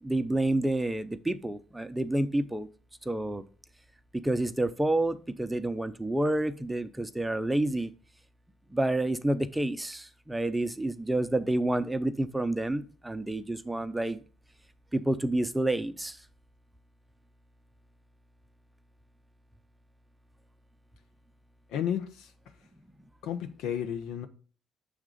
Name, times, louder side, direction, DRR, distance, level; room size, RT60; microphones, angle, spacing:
voice 1, 0.0-2.7 3.1-3.4 4.2-7.9 8.7-14.2 14.9-16.2, right 1 dB, 10° right, 0.6 m, -29 dB
voice 2, 21.7-22.3 23.2-24.3, left 9 dB, 80° left, 0.8 m, -32 dB
6.5 x 3.6 x 5.0 m
supercardioid pair, 70°, 0 cm